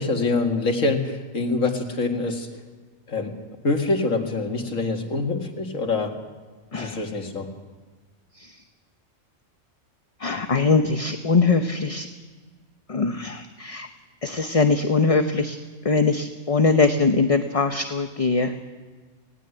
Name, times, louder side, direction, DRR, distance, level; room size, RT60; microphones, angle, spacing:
voice 1, 0.0-2.5 3.1-3.3 3.6-6.1 6.7-7.5, left 3 dB, 85° left, 4 dB, 2.5 m, -25 dB
voice 2, 10.2-12.1 12.9-13.9 14.2-15.6 15.8-18.5, left 4 dB, 30° left, 7 dB, 0.9 m, -21 dB
19.5 x 18.0 x 8.0 m, 1.4 s
omnidirectional pair, 1.3 m